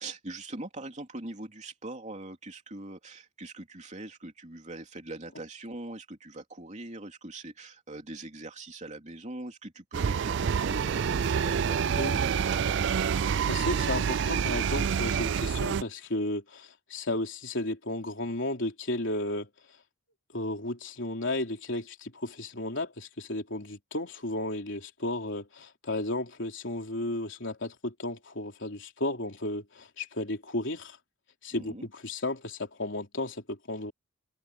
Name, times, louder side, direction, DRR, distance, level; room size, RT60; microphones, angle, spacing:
voice 1, 0.0-13.1 31.5-31.9, right 2 dB, 35° right, 3.2 m, -42 dB
sound 1, 9.9-15.8, right 7 dB, 60° right, 0.4 m, -27 dB
voice 2, 13.5-19.5 20.3-31.0 31.4-33.9, left 1 dB, 65° left, 3.8 m, -33 dB
head